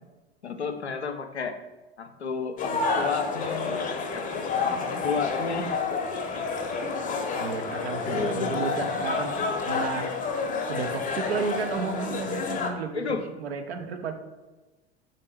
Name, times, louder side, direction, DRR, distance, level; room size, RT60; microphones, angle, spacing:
voice 1, 0.4-1.6 2.0-6.4 8.0-8.5 12.9-13.4, left 5 dB, 90° left, 7 dB, 0.5 m, -32 dB
sound 1, 2.6-12.7, left 4 dB, 25° left, 0.6 m, -29 dB
voice 2, 7.4-10.1 10.7-14.1, right 5 dB, 75° right, 6 dB, 0.6 m, -33 dB
4.1 x 3.6 x 3.3 m, 1.1 s
figure-of-eight pair, 80°, 32 cm